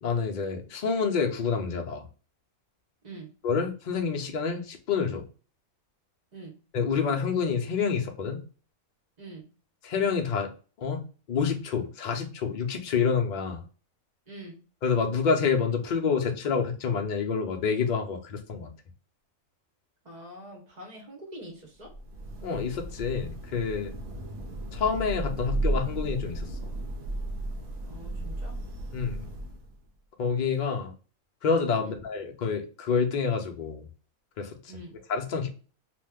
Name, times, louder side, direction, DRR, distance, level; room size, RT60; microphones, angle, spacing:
voice 1, 0.0-2.0 3.4-5.3 6.7-8.4 9.8-10.5 10.8-11.0 11.3-13.6 14.8-18.7 22.4-23.9 24.7-26.6 28.9-29.3 30.2-30.9 31.4-33.9 34.4-34.6 35.1-35.5, left 5 dB, 60° left, 0.5 m, -28 dB
voice 2, 9.2-9.5 14.3-14.6 20.0-21.9 27.8-28.6 31.8-32.0 34.7-35.0, right 1 dB, 40° right, 0.7 m, -44 dB
Thunder / Rain, 21.8-29.8, right 1 dB, 75° right, 1.1 m, -34 dB
3.0 x 2.0 x 3.4 m
omnidirectional pair, 1.5 m